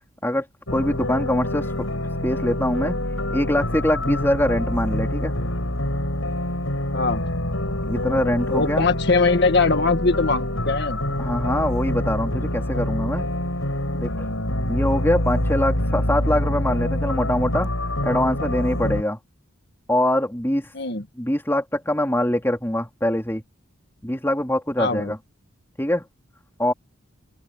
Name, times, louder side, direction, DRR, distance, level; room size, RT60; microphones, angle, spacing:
sound 1, 0.7-19.0, left 1 dB, 75° left, 7.8 m, -26 dB
voice 1, 0.7-1.9 2.2-2.9 3.3-5.3 7.9-8.9 11.2-13.3 14.0-14.3 14.7-17.7 18.0-19.2 19.9-20.7 21.2-23.4 24.0-25.2 25.8-26.0 26.6-26.7, left 1 dB, 10° left, 3.4 m, -23 dB
voice 2, 8.5-11.0 20.7-21.1 24.8-25.1, left 3 dB, 55° left, 1.8 m, -21 dB
open air
head